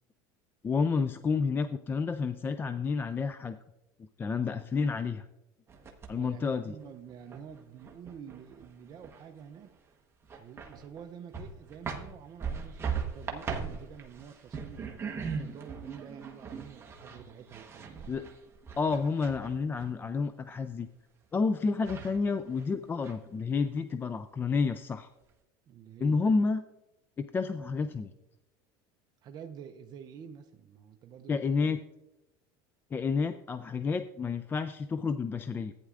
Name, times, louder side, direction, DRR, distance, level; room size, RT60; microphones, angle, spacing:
voice 1, 0.6-3.6 4.2-5.3 6.1-6.7 18.1-18.3 18.8-20.9 21.3-25.1 26.0-26.6 27.2-28.1 31.3-31.8 32.9-35.7, left 4 dB, 20° left, 11 dB, 0.3 m, -30 dB
sound 1, 5.7-6.4 6.8-9.4 9.7-9.8 10.2-11.1 11.3-19.9 21.4-21.5 21.8-22.6 23.0-23.7, right 6 dB, 20° right, 1.1 m, -39 dB
voice 2, 6.2-9.7 10.4-18.1 25.7-26.2 29.2-31.7, right 7 dB, 35° right, 5 dB, 0.6 m, -48 dB
14.5 x 9.3 x 2.5 m, 0.96 s
supercardioid pair, 130°, 12 cm